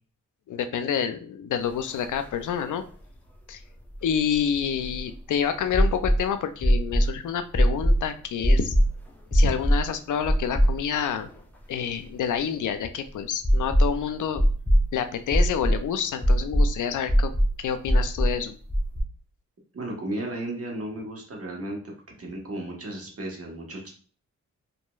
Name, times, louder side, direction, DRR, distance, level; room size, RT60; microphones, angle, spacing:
voice 1, 0.5-2.8 3.5-3.6 4.0-8.7 9.3-11.3 11.7-14.4 14.9-17.3 17.6-18.5, left 8 dB, 65° left, 9 dB, 0.4 m, -28 dB
sound 1, 1.9-2.0 2.3-2.4 3.9-5.1 5.7-6.2 6.6-7.1 7.5-8.0 8.4-8.9 9.3-9.8 10.3-11.0 11.3-11.4 13.4-14.0 14.4-14.8 15.3-15.8 16.2-16.7 17.1-17.5 17.9-18.3 18.7-19.0, equal, 5° left, 0.7 m, -20 dB
voice 2, 19.7-21.8 22.2-23.9, right 1 dB, 45° right, -1 dB, 1.1 m, -34 dB
3.0 x 2.5 x 2.3 m, 0.42 s
cardioid pair, 55°, 33 cm